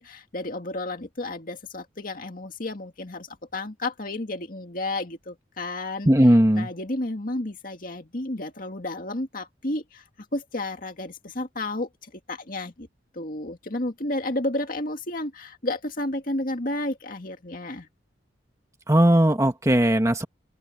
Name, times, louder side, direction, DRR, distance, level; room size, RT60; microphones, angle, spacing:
voice 1, 0.0-6.1 6.5-10.0 10.3-12.9 13.1-17.9, left 2 dB, 50° left, 2.2 m, -32 dB
voice 2, 6.1-6.7 18.9-20.2, right 1 dB, 15° right, 1.4 m, -18 dB
open air
head